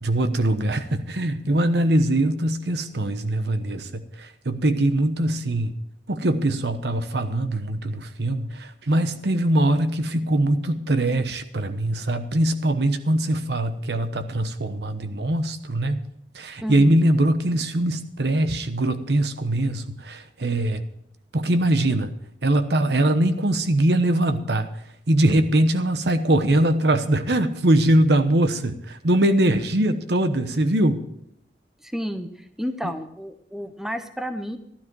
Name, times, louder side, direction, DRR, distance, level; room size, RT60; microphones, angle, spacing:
voice 1, 0.0-5.8 6.1-16.0 16.3-20.8 21.3-22.2 22.4-24.7 25.1-31.0 32.8-32.9, right 1 dB, 70° right, 10 dB, 1.0 m, -22 dB
voice 2, 16.6-17.0 31.8-34.6, equal, ahead, 9 dB, 0.7 m, -31 dB
13.0 x 12.0 x 4.7 m, 0.76 s
head